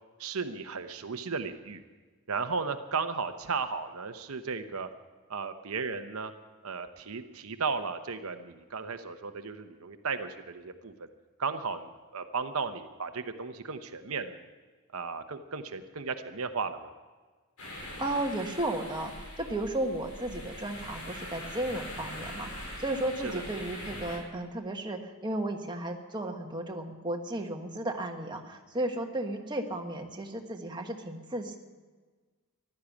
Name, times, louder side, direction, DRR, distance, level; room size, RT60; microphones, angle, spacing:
voice 1, 0.2-1.8 2.3-4.9 5.3-6.3 6.6-11.1 11.4-14.4 14.9-16.9 23.2-23.4, right 5 dB, 70° right, 8 dB, 0.9 m, -35 dB
sound 1, 17.6-24.2, left 1 dB, 75° left, 5.1 m, -42 dB
voice 2, 18.0-31.6, right 1 dB, 20° right, 3 dB, 1.5 m, -34 dB
15.0 x 12.0 x 7.2 m, 1.4 s
head